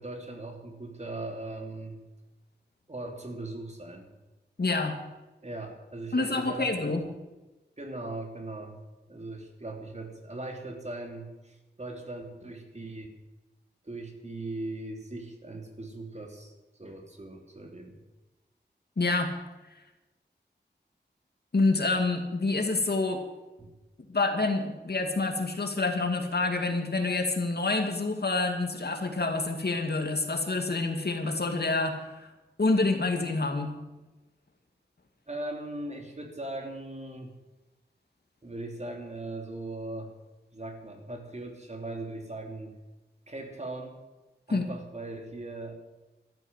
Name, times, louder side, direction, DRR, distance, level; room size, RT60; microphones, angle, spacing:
voice 1, 0.0-2.0 2.9-4.1 5.4-6.9 7.8-8.8 9.1-13.1 13.8-18.0 23.6-23.7 35.3-37.3 38.4-40.1 40.5-42.8 43.3-44.0 44.5-45.7, right 2 dB, 40° right, 2 dB, 3.2 m, -39 dB
voice 2, 4.6-5.0 6.1-7.0 19.0-19.3 21.5-23.2 24.1-32.3 32.6-33.7 44.5-44.7, left 3 dB, 60° left, 4 dB, 2.4 m, -27 dB
14.0 x 13.0 x 7.5 m, 1.1 s
wide cardioid pair, 80°, 18 cm